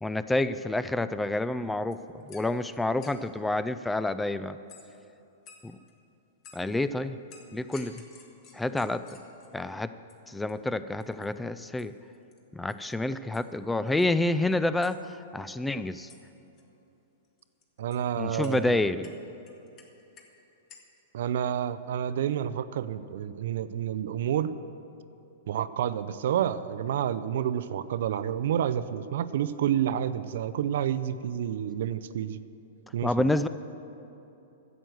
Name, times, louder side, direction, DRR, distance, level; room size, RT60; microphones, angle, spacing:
voice 1, 0.0-4.6 5.6-5.8 6.5-7.2 7.5-8.0 8.5-9.1 9.5-10.0 10.3-11.9 12.5-16.1 18.2-19.1 33.0-33.5, left 2 dB, 5° left, 13 dB, 0.3 m, -28 dB
sound 1, 1.6-1.7 1.9-3.4 4.7-5.0 5.5-5.9 6.4-6.8 7.3-9.7 10.1-10.2 10.5-10.6 10.9-11.3 11.8-11.9 12.1-12.4 12.7-12.9 13.3-13.5 13.9-14.5 14.8-14.9 16.1-16.2 16.5-16.6 17.2-18.0 18.4-18.5 19.0-20.4 20.7-21.0, left 5 dB, 35° left, 1.5 m, -53 dB
voice 2, 17.8-18.9 21.1-24.5 25.5-32.4 32.9-33.3, right 10 dB, 65° right, 14 dB, 0.4 m, -29 dB
11.0 x 7.7 x 7.7 m, 2.9 s
hypercardioid pair, 110°, 0 cm